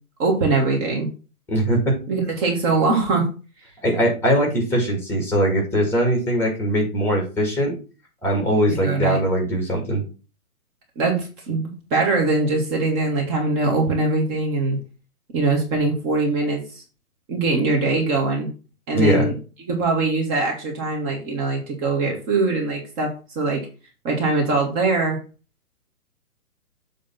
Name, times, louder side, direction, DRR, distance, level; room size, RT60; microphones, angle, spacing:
voice 1, 0.2-1.1 2.1-3.2 8.7-9.2 11.0-14.8 15.3-16.8 17.3-18.5 18.9-19.3 19.7-23.6 24.0-25.2, right 3 dB, 25° right, 0 dB, 1.8 m, -22 dB
voice 2, 1.5-1.9 3.8-7.8 8.2-10.0 18.9-19.3, equal, 5° left, 1 dB, 2.2 m, -21 dB
7.7 x 3.6 x 5.7 m, 0.34 s
hypercardioid pair, 140°, 44 cm